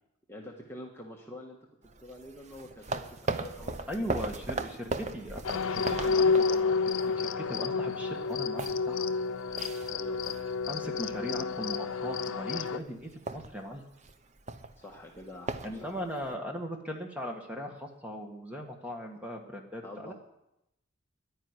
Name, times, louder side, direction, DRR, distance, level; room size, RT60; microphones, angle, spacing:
voice 1, 0.3-1.6 2.0-4.4 9.9-10.4 14.8-16.0 19.8-20.1, left 1 dB, 10° left, -1 dB, 1.3 m, -46 dB
sound 1, 1.8-7.1 7.4-7.6 8.0-10.7 11.0-11.4 11.9-12.3 12.6-12.7 13.0-16.3, right 3 dB, 35° right, 0.7 m, -38 dB
voice 2, 3.9-9.1 10.7-13.8 15.6-20.1, equal, 5° right, 2 dB, 1.7 m, -39 dB
sound 2, 5.4-12.8, left 4 dB, 75° left, 0.6 m, -30 dB
11.0 x 9.6 x 9.8 m, 0.84 s
head